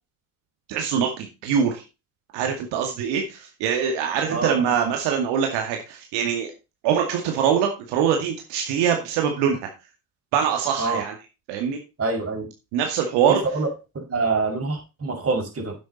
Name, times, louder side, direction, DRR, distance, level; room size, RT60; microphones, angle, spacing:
voice 1, 0.7-1.8 2.3-6.5 6.8-9.6 10.3-11.1 11.5-11.8 12.7-13.4, right 8 dB, 70° right, 3 dB, 2.2 m, -23 dB
voice 2, 4.3-4.6 10.8-11.0 12.0-12.5 13.4-13.7 13.9-15.7, right 3 dB, 30° right, 2 dB, 5.5 m, -25 dB
10.5 x 7.9 x 4.1 m, 0.29 s
supercardioid pair, 80°, 44 cm